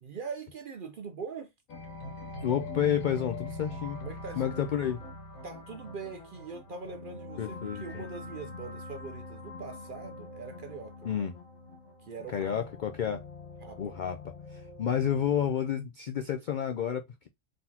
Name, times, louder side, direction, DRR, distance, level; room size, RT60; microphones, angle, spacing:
voice 1, 0.0-1.5 4.0-4.5 5.4-11.0 12.0-12.7 13.6-14.0 14.8-15.1, right 5 dB, 60° right, 0.6 m, -42 dB
sound 1, 1.7-15.5, left 2 dB, 85° left, 1.6 m, -43 dB
voice 2, 2.4-4.0 4.4-5.0 7.4-8.0 11.0-11.3 12.3-13.2 13.8-14.2 14.5-17.3, left 9 dB, 70° left, 0.4 m, -30 dB
4.1 x 3.8 x 2.7 m
omnidirectional pair, 1.4 m